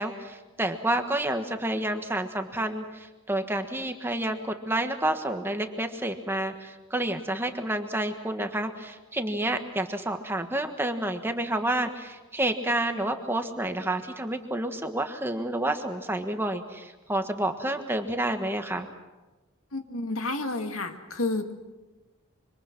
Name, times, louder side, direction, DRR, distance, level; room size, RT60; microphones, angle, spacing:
voice 1, 0.0-18.9, right 1 dB, 10° right, 6 dB, 1.3 m, -29 dB
voice 2, 19.7-21.5, left 2 dB, 80° left, 6 dB, 2.0 m, -30 dB
26.0 x 25.0 x 6.0 m, 1.2 s
head